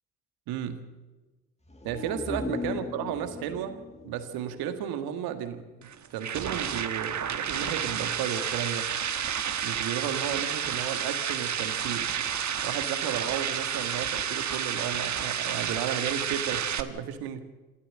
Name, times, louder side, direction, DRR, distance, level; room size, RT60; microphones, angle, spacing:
voice 1, 0.5-0.8 1.8-8.9 9.6-12.1 12.6-17.4, right 9 dB, 75° right, 8 dB, 1.8 m, -33 dB
sound 1, 1.6-5.4 5.7-5.8, left 3 dB, 15° left, 2.6 m, -38 dB
sound 2, 5.8-16.8, right 8 dB, 50° right, 1.4 m, -30 dB
27.5 x 13.0 x 7.5 m, 1.2 s
hypercardioid pair, 45°, 37 cm